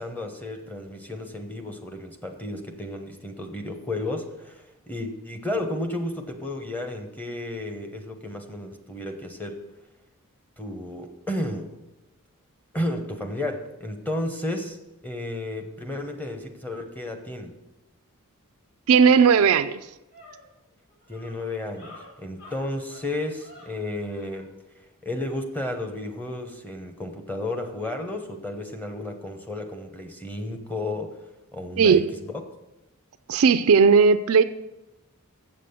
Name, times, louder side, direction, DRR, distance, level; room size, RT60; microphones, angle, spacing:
voice 1, 0.0-9.6 10.6-11.7 12.7-14.8 15.0-17.5 21.1-24.5 25.0-32.4, left 1 dB, 10° left, 5 dB, 1.0 m, -33 dB
voice 2, 18.9-19.8 31.8-32.0 33.3-34.4, right 6 dB, 65° right, 12 dB, 0.4 m, -16 dB
sound 1, 19.5-24.5, left 1 dB, 45° left, 3.0 m, -50 dB
7.6 x 7.3 x 6.8 m, 0.96 s
head